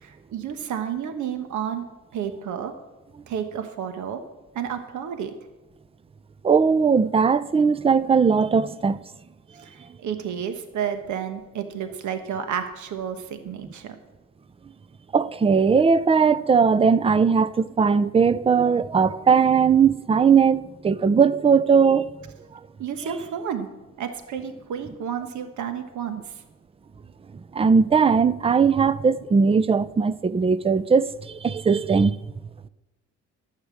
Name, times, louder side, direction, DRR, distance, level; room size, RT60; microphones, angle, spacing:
voice 1, 0.0-1.8 2.1-2.7 3.3-4.2 4.5-5.3 9.6-14.0 22.8-23.7 24.0-26.2, right 8 dB, 75° right, 1.3 m, -31 dB
voice 2, 6.4-9.0 15.1-22.1 27.5-32.2, right 6 dB, 20° right, 0.5 m, -19 dB
11.5 x 8.2 x 7.1 m
cardioid pair, 90°, 30 cm